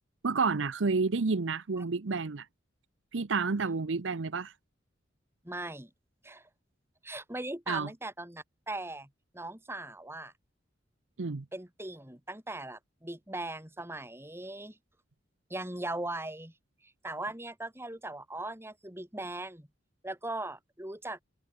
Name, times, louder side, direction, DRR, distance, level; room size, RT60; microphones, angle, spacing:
voice 1, 0.2-2.5 3.1-4.5 7.7-7.9 11.2-11.5, right 4 dB, 85° right, 0.8 m, -30 dB
voice 2, 5.4-5.9 6.2-6.5 7.0-9.1 9.3-10.3 11.5-14.8 15.5-16.5 16.8-19.7 20.0-21.2, right 2 dB, 15° right, 4.0 m, -39 dB
head